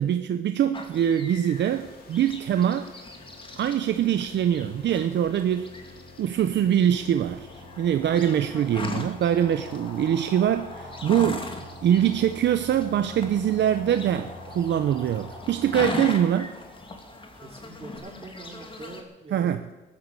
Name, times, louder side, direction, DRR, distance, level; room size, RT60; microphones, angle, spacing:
voice 1, 0.0-2.9 3.6-5.7 6.2-11.5 11.8-16.5 19.3-19.6, right 10 dB, 65° right, 9 dB, 0.8 m, -23 dB
sound 1, 0.7-19.0, left 2 dB, 25° left, 2.6 m, -39 dB
sound 2, 1.5-15.9, left 2 dB, 50° left, 4.8 m, -48 dB
sound 3, 6.8-18.0, left 2 dB, 85° left, 4.5 m, -47 dB
voice 2, 17.3-19.7, right 3 dB, 30° right, 2 dB, 3.6 m, -44 dB
14.0 x 12.0 x 7.8 m, 1.1 s
cardioid pair, 90°, 20 cm